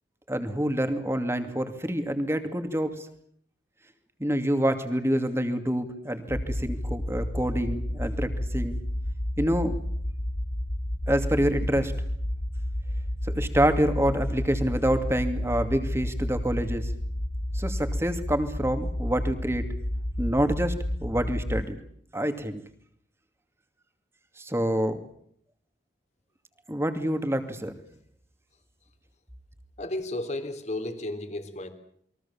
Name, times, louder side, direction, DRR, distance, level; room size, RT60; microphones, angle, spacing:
voice 1, 0.3-3.1 4.2-8.8 9.4-9.8 11.1-12.0 13.3-16.9 17.5-19.6 20.2-21.8 22.1-22.6 24.4-25.0 26.7-27.7, equal, 15° right, 7 dB, 2.5 m, -27 dB
sound 1, 6.3-21.6, left 1 dB, 60° left, 1.8 m, -31 dB
voice 2, 29.8-31.7, left 1 dB, 40° left, 8 dB, 3.3 m, -33 dB
29.0 x 22.5 x 7.3 m, 0.65 s
head